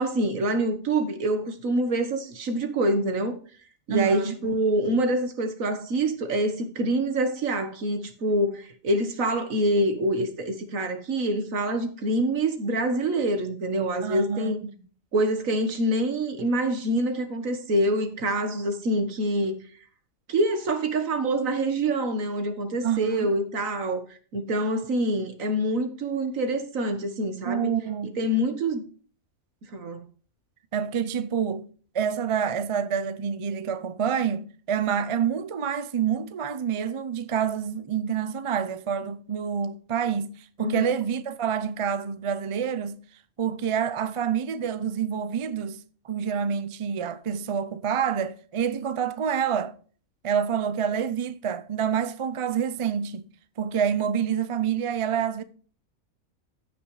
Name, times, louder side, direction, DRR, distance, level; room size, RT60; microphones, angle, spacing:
voice 1, 0.0-3.4 3.9-14.6 15.1-19.6 20.3-27.7 28.2-28.8 29.7-30.1 40.6-40.9, right 1 dB, 70° right, 1.8 m, -26 dB
voice 2, 3.9-4.4 14.0-14.5 22.8-23.3 27.4-28.1 30.7-31.7 31.9-40.3 40.6-43.0 43.4-45.8 46.0-49.7 50.2-53.3 53.6-55.4, right 8 dB, 50° right, 0.3 m, -27 dB
15.0 x 6.0 x 3.2 m
omnidirectional pair, 1.5 m